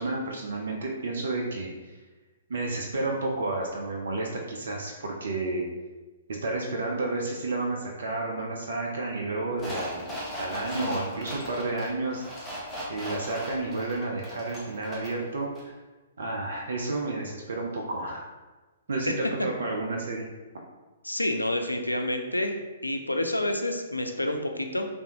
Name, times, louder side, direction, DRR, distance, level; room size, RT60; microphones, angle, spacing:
voice 1, 0.0-1.9 2.5-5.6 6.4-12.2 12.9-15.8 16.2-18.3 18.9-20.3, right 2 dB, 60° right, 0 dB, 0.4 m, -31 dB
sound 1, 9.6-15.2 15.6-15.7, equal, 10° left, 0.8 m, -37 dB
voice 2, 21.0-22.5 22.8-24.9, left 1 dB, 85° left, 5 dB, 0.3 m, -28 dB
3.3 x 2.6 x 2.8 m, 1.2 s
figure-of-eight pair, 120°, 0 cm